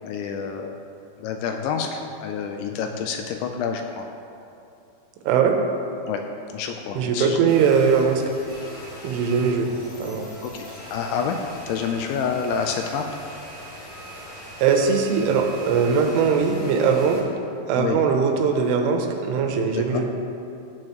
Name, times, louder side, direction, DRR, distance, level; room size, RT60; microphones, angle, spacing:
voice 1, 0.0-0.8 1.2-4.1 6.1-6.2 6.5-7.4 10.4-11.4 11.7-13.1 17.8-18.0 19.7-20.0, left 6 dB, 85° left, 4 dB, 2.8 m, -28 dB
voice 2, 5.3-5.6 7.0-8.2 9.0-9.7 10.0-10.3 14.6-17.2 17.7-20.1, right 6 dB, 80° right, 3 dB, 3.2 m, -20 dB
sound 1, 7.5-17.2, equal, 40° left, 2.5 m, -40 dB
14.0 x 9.0 x 3.0 m, 2.7 s
omnidirectional pair, 5.6 m